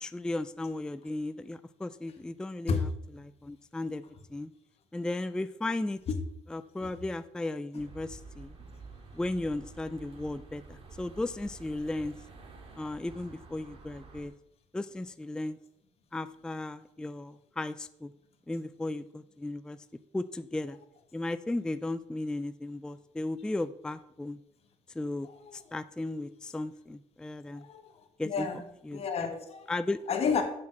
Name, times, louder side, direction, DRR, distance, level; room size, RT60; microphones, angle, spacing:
voice 1, 0.0-4.0 4.3-4.5 4.9-6.0 6.5-8.6 9.1-12.1 12.8-14.3 14.7-15.6 16.1-18.1 18.5-19.8 20.1-20.8 21.1-24.4 24.9-27.7 28.2-28.5 28.9-29.0 29.7-30.0, left 2 dB, 5° left, 12 dB, 0.3 m, -35 dB
sound 1, 7.8-14.3, right 4 dB, 45° right, 2.0 m, -49 dB
voice 2, 25.2-25.6 27.5-27.9 28.2-28.6 28.9-29.7 30.1-30.4, left 5 dB, 50° left, 5 dB, 1.6 m, -31 dB
7.4 x 5.9 x 6.2 m, 0.79 s
cardioid pair, 115°, 13 cm